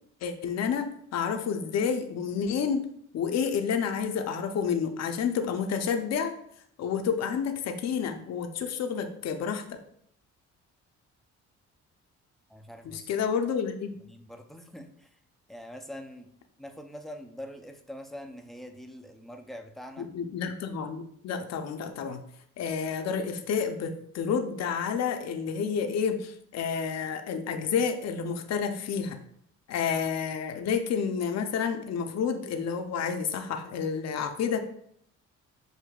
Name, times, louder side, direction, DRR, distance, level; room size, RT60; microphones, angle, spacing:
voice 1, 0.2-2.9 3.1-6.3 6.8-9.8 12.8-14.0 20.0-22.2 22.6-29.2 29.7-34.6, left 6 dB, 60° left, 7 dB, 0.6 m, -30 dB
voice 2, 12.5-13.2 14.0-15.2 15.5-16.3 16.6-20.1, equal, ahead, 5 dB, 0.4 m, -44 dB
6.4 x 2.6 x 2.3 m, 0.68 s
cardioid pair, 90°, 30 cm